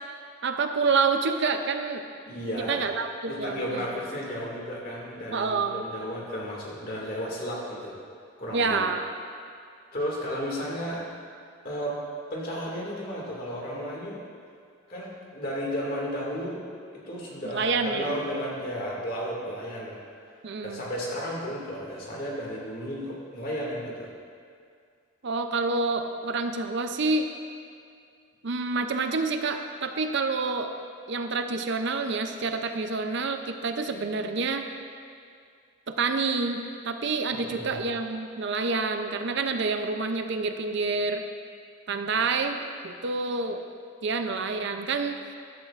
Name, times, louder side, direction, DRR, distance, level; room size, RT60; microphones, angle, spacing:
voice 1, 0.4-2.0 2.7-3.9 5.3-5.8 8.5-9.1 17.4-18.1 20.4-20.8 25.2-27.3 28.4-30.7 31.1-34.7 36.0-41.2 41.9-43.6 44.0-45.2, right 4 dB, 55° right, 6 dB, 0.5 m, -28 dB
voice 2, 2.3-2.9 3.3-8.0 8.4-8.8 9.9-11.0 11.6-12.0 12.3-14.2 14.9-16.6 16.9-20.0 20.6-24.1 37.3-37.8, equal, 45° left, -3 dB, 2.2 m, -33 dB
14.0 x 11.5 x 2.5 m, 2.3 s
head